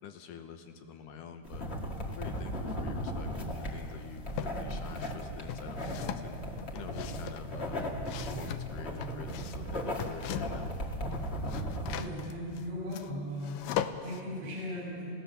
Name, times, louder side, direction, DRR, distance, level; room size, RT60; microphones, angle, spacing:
voice 1, 0.0-1.7 2.0-7.8 8.2-11.0, left 7 dB, 70° left, 6 dB, 2.1 m, -47 dB
sound 1, 1.4-12.0, equal, 50° left, 0.7 m, -37 dB
sound 2, 3.8-4.6 5.0-10.7 11.0-14.2, left 10 dB, 85° left, 1.9 m, -39 dB
voice 2, 11.8-15.1, left 1 dB, 90° right, -5 dB, 6.4 m, -38 dB
27.5 x 16.5 x 6.9 m, 2.5 s
omnidirectional pair, 4.9 m